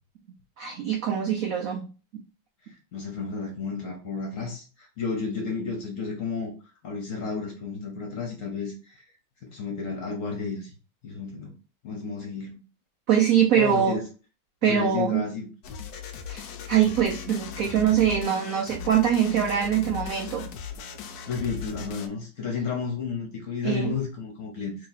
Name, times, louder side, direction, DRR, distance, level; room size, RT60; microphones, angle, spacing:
voice 1, 0.6-1.9 13.1-14.0 14.6-15.2 16.3-20.5 23.6-23.9, right 9 dB, 85° right, 0.7 m, -23 dB
voice 2, 2.7-6.5 6.8-9.0 9.4-10.7 11.0-11.5 11.8-12.6 13.5-14.0 14.6-15.5 21.3-24.8, left 4 dB, 55° left, 1.0 m, -32 dB
sound 1, 15.6-22.1, left 7 dB, 80° left, 0.8 m, -38 dB
3.0 x 2.9 x 3.9 m
omnidirectional pair, 2.1 m